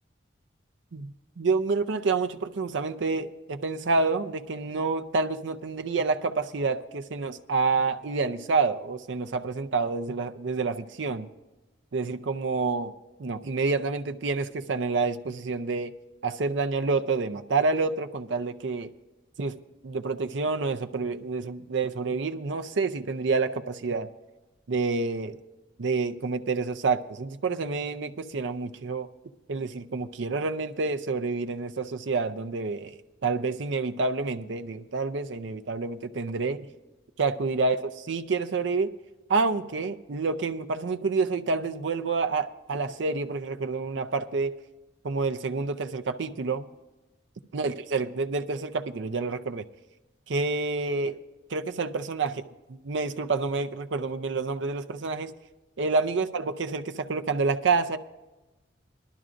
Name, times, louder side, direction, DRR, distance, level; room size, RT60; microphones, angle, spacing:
voice 1, 0.9-11.3 11.9-12.9 13.2-15.9 16.2-18.9 19.4-19.6 19.8-24.1 24.7-25.4 25.8-29.1 29.5-33.0 33.2-36.7 37.2-38.9 39.3-44.5 45.0-46.7 47.5-49.6 50.3-51.2 51.5-52.4 52.8-55.3 55.8-58.0, right 4 dB, 70° right, 9 dB, 0.5 m, -28 dB
20.0 x 12.5 x 2.5 m, 1.1 s
head